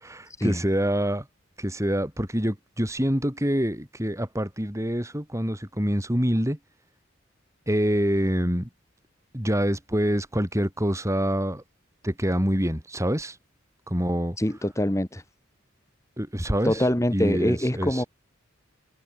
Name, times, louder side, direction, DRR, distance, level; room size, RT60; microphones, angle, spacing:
voice 1, 0.0-1.2 1.6-6.6 7.7-8.7 9.3-11.6 12.0-13.3 13.9-14.4 16.2-16.8 17.1-18.1, equal, 15° right, 6.5 m, -26 dB
voice 2, 14.4-15.2 16.6-18.0, left 1 dB, 15° left, 1.7 m, -24 dB
head